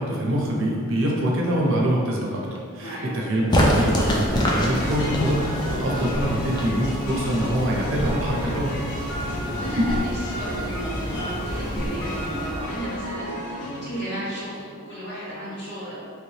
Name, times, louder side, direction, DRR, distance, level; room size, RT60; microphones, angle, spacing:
voice 1, 0.0-2.4 2.7-5.4 5.7-8.7 9.7-9.8, equal, 60° right, -2 dB, 0.6 m, -24 dB
sound 1, 3.5-13.3, equal, 20° left, 0.3 m, -27 dB
sound 2, 4.4-14.6, equal, 80° left, 0.6 m, -34 dB
voice 2, 9.0-15.9, equal, 50° left, -10 dB, 1.4 m, -34 dB
3.0 x 2.8 x 3.1 m, 2.1 s
head